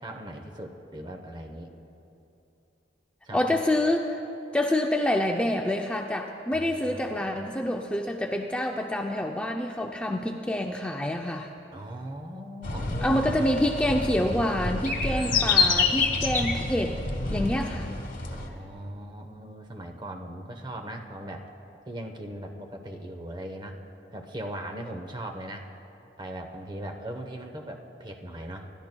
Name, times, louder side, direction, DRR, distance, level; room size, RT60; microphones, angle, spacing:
voice 1, 0.0-1.7 3.2-3.6 6.5-7.3 11.7-13.2 15.1-15.6 17.2-17.5 18.3-21.5 21.8-23.8 24.1-25.7 26.2-28.7, right 1 dB, 25° right, 3 dB, 0.9 m, -39 dB
voice 2, 3.3-4.2 4.5-11.5 13.0-17.0 17.3-17.9, left 1 dB, 5° left, 2 dB, 0.4 m, -27 dB
sound 1, 12.6-18.5, left 4 dB, 50° left, 1.2 m, -27 dB
27.5 x 12.0 x 2.2 m, 2.9 s
head